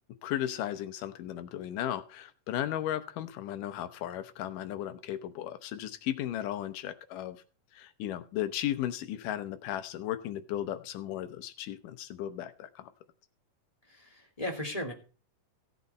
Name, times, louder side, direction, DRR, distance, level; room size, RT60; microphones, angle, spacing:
voice 1, 0.2-7.4 7.7-12.9, left 12 dB, 85° left, 11 dB, 2.5 m, -35 dB
voice 2, 13.8-14.9, left 1 dB, 15° left, 1 dB, 1.7 m, -36 dB
15.5 x 8.1 x 4.2 m, 0.35 s
omnidirectional pair, 3.7 m